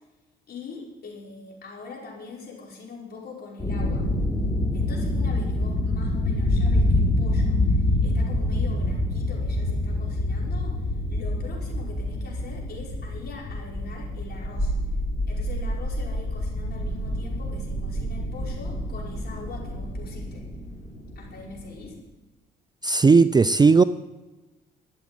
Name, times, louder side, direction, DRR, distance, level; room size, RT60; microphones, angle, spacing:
voice 1, 0.5-4.1 4.7-14.7 15.3-20.4 21.2-22.0, left 4 dB, 55° left, -3 dB, 5.3 m, -42 dB
sound 1, 3.6-21.9, left 1 dB, 15° left, 4.2 m, -26 dB
voice 2, 22.8-23.8, right 4 dB, 20° right, 14 dB, 0.4 m, -16 dB
13.0 x 8.4 x 9.2 m, 1.1 s
cardioid pair, 90°, 20 cm